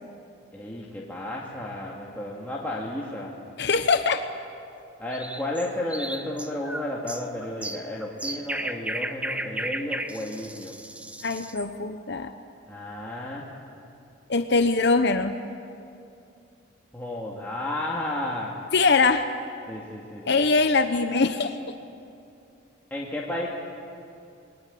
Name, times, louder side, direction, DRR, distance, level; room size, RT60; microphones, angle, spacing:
voice 1, 0.5-3.3 5.0-10.8 12.7-13.5 16.9-18.5 19.7-20.4 22.9-23.5, left 1 dB, 10° left, -5 dB, 2.3 m, -32 dB
voice 2, 3.6-4.3 11.2-12.3 14.3-15.4 18.7-19.3 20.3-21.6, left 4 dB, 55° left, 8 dB, 0.9 m, -22 dB
sound 1, 5.1-11.7, right 1 dB, 5° right, 0.8 m, -34 dB
28.0 x 22.5 x 8.6 m, 2.6 s
head